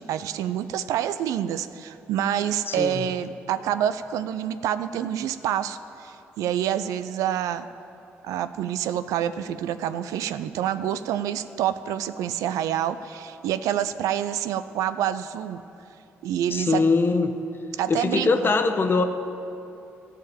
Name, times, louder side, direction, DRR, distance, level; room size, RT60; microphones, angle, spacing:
voice 1, 0.0-7.7 8.2-15.6 16.2-16.8 17.8-18.5, right 10 dB, 75° right, 13 dB, 0.4 m, -27 dB
voice 2, 2.7-3.1 16.5-17.3 17.9-19.0, left 4 dB, 40° left, 6 dB, 1.0 m, -22 dB
14.0 x 5.0 x 8.8 m, 2.8 s
hypercardioid pair, 50°, 6 cm